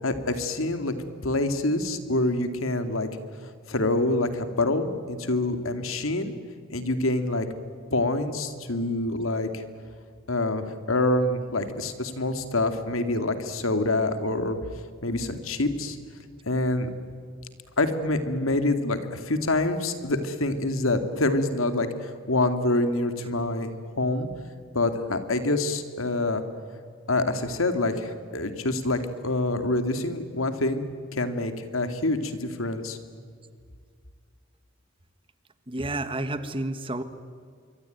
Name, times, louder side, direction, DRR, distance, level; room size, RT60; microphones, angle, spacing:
voice 1, 0.0-0.9 1.2-3.1 3.7-6.3 6.7-7.5 7.9-9.6 10.3-14.6 15.0-16.0 16.5-16.9 17.8-23.7 24.0-24.3 24.7-26.4 27.1-30.8 31.1-33.0, left 2 dB, 85° left, 8 dB, 2.5 m, -26 dB
voice 2, 35.7-37.0, right 2 dB, 25° right, 11 dB, 1.3 m, -30 dB
26.5 x 23.5 x 9.4 m, 2.1 s
head